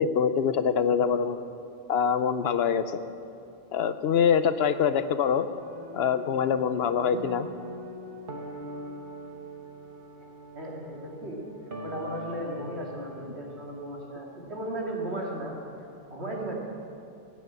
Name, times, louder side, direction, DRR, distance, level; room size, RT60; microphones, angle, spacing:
voice 1, 0.0-1.4 1.9-3.0 3.7-5.5 5.9-7.5, left 7 dB, 75° left, 12 dB, 0.9 m, -24 dB
sound 1, 5.6-14.0, right 1 dB, 55° right, 1.3 m, -42 dB
voice 2, 10.5-11.4 11.8-15.5 16.1-16.6, right 1 dB, 85° right, -2 dB, 2.9 m, -35 dB
15.5 x 9.6 x 8.0 m, 2.6 s
omnidirectional pair, 1.1 m